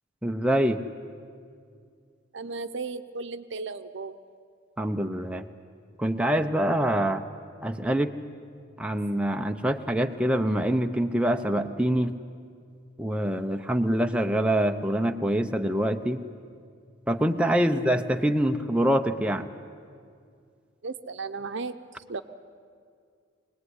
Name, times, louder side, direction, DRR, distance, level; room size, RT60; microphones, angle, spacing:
voice 1, 0.2-0.8 4.8-5.4 6.0-7.2 7.6-8.1 8.8-12.1 13.0-16.2 17.1-19.5, right 1 dB, 5° right, 5 dB, 0.7 m, -25 dB
voice 2, 2.3-4.2 17.6-17.9 20.8-22.2, right 4 dB, 65° right, 10 dB, 0.9 m, -35 dB
23.5 x 19.0 x 9.7 m, 2.3 s
head